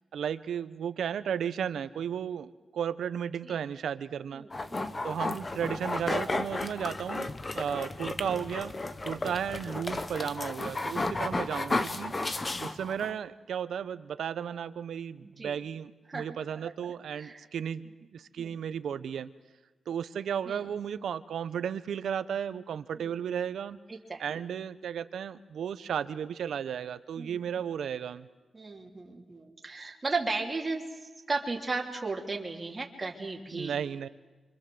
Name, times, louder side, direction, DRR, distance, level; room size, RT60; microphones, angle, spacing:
voice 1, 0.1-4.4 5.0-8.8 9.0-12.2 12.6-19.3 19.9-23.8 24.2-28.3 33.5-34.1, right 8 dB, 85° right, 13 dB, 1.0 m, -34 dB
voice 2, 4.3-5.0 10.8-11.2 15.2-15.6 16.1-16.3 16.5-17.5 18.4-18.6 20.5-20.6 23.9-24.4 27.2-27.4 28.5-30.8 31.3-33.8, right 3 dB, 20° right, 0 dB, 3.2 m, -36 dB
sound 1, 4.5-13.1, left 2 dB, 25° left, 1.2 m, -33 dB
28.5 x 25.5 x 7.9 m, 1.2 s
wide cardioid pair, 155°, 0 cm